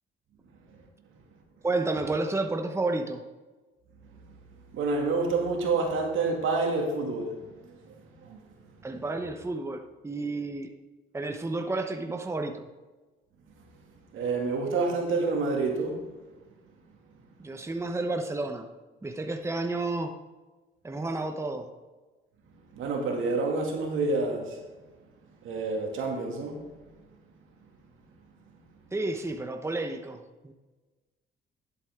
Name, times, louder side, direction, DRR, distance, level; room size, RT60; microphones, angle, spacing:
voice 1, 0.5-0.9 4.1-4.4 4.7-8.7 13.6-13.7 14.1-16.1 17.1-17.3 22.7-24.6 25.2-26.9 27.7-27.8 28.6-28.7, right 3 dB, 80° right, 1 dB, 2.3 m, -29 dB
voice 2, 1.6-3.2 8.8-10.7 11.1-12.7 17.4-18.7 19.0-20.1 20.8-21.7 28.9-30.5, right 2 dB, 15° right, 5 dB, 0.9 m, -31 dB
11.0 x 8.0 x 3.7 m, 1.2 s
cardioid pair, 90°, 20 cm